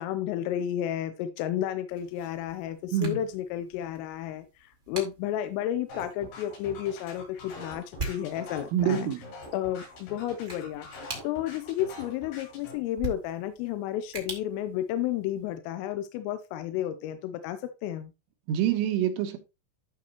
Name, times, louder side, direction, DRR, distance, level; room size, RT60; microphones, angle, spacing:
voice 1, 0.0-9.1 9.5-18.1, left 11 dB, 85° left, 3.3 m, -32 dB
sound 1, 1.9-15.6, right 3 dB, 35° right, 1.2 m, -44 dB
sound 2, 5.9-12.7, left 2 dB, 65° left, 6.7 m, -44 dB
voice 2, 8.7-9.2 18.5-19.4, right 9 dB, 80° right, 3.5 m, -26 dB
14.0 x 4.9 x 2.9 m
omnidirectional pair, 5.8 m